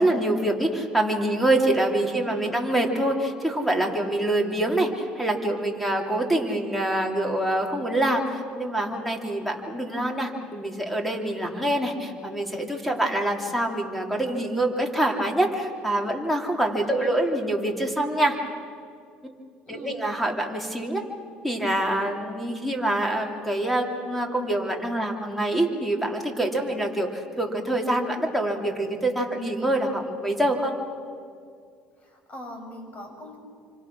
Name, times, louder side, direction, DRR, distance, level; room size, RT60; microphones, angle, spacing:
voice 1, 0.0-18.4 19.2-19.3 19.7-21.0 21.4-30.7, right 1 dB, ahead, 2 dB, 3.3 m, -25 dB
voice 2, 2.0-2.7 16.8-17.2 19.6-20.0 32.0-33.4, left 1 dB, 35° left, 4 dB, 6.1 m, -42 dB
28.0 x 25.5 x 6.2 m, 2.3 s
supercardioid pair, 105°, 4 cm